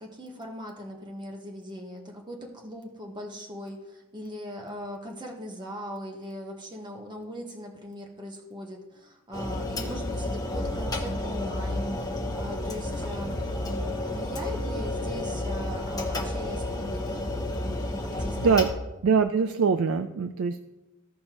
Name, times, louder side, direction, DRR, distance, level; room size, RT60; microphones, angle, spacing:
voice 1, 0.0-17.3 18.0-18.6, equal, 20° right, 1 dB, 1.1 m, -40 dB
sound 1, 9.3-18.7, left 1 dB, 15° left, 1.2 m, -31 dB
voice 2, 18.2-18.7 19.0-20.6, right 5 dB, 70° right, 9 dB, 0.4 m, -23 dB
15.5 x 5.3 x 3.0 m, 1.0 s
head